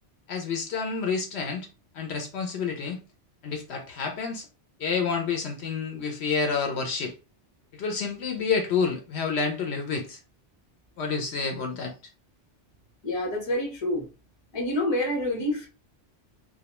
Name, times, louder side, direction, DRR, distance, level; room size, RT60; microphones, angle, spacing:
voice 1, 0.3-1.7 1.9-3.0 3.4-4.5 4.8-7.1 7.7-10.2 11.0-11.9, left 5 dB, 70° left, 0.8 m, -29 dB
voice 2, 13.0-14.1 14.5-15.7, left 1 dB, 25° left, 0.7 m, -27 dB
2.2 x 2.1 x 2.9 m
omnidirectional pair, 1.2 m